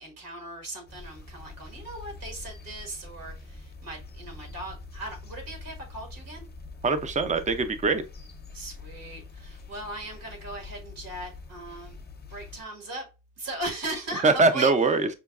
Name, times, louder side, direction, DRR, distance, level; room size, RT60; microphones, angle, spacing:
voice 1, 0.0-6.5 8.5-13.1 13.4-14.7, right 1 dB, 80° right, 1.5 m, -38 dB
sound 1, 0.9-12.6, left 4 dB, 30° left, 0.6 m, -44 dB
voice 2, 6.8-8.0 14.2-15.1, right 3 dB, 20° right, 0.4 m, -22 dB
5.4 x 2.2 x 2.3 m
cardioid pair, 100°, 34 cm